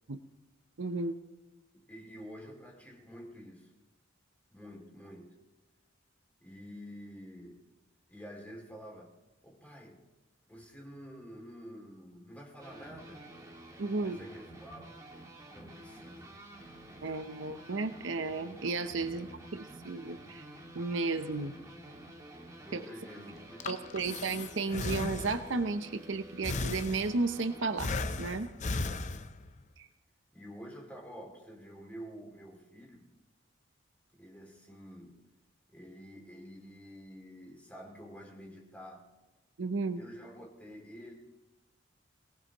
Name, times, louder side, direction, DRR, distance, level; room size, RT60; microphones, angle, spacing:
voice 1, 0.8-1.2 13.8-14.2 17.0-20.4 20.7-21.5 22.7-22.8 23.7-28.5 29.8-29.9 39.6-40.0, right 3 dB, 65° right, 9 dB, 0.7 m, -33 dB
voice 2, 1.7-3.7 4.5-5.4 6.4-7.6 8.1-9.1 9.4-10.1 10.5-13.3 14.0-15.1 15.5-16.4 17.0-17.3 19.0-19.5 22.6-24.0 30.3-33.1 34.1-35.2 35.7-39.1 40.0-41.1, equal, 5° left, 0 dB, 2.5 m, -49 dB
sound 1, 12.6-28.0, right 1 dB, 15° right, 2.0 m, -50 dB
Breathing, 23.4-25.7 26.4-27.4 27.8-29.6, left 3 dB, 35° left, 0.6 m, -36 dB
23.0 x 18.5 x 3.0 m, 1.1 s
head